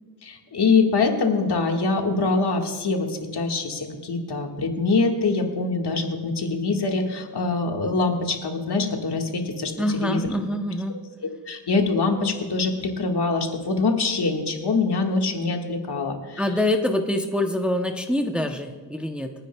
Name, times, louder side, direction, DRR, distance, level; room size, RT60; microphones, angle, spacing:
voice 1, 0.2-10.3 10.9-11.0 11.5-16.4, left 3 dB, 65° left, 2 dB, 1.6 m, -24 dB
voice 2, 9.8-10.9 16.4-19.3, left 1 dB, 5° right, 4 dB, 0.6 m, -25 dB
28.0 x 9.8 x 2.2 m, 1.5 s
wide cardioid pair, 160°, 42 cm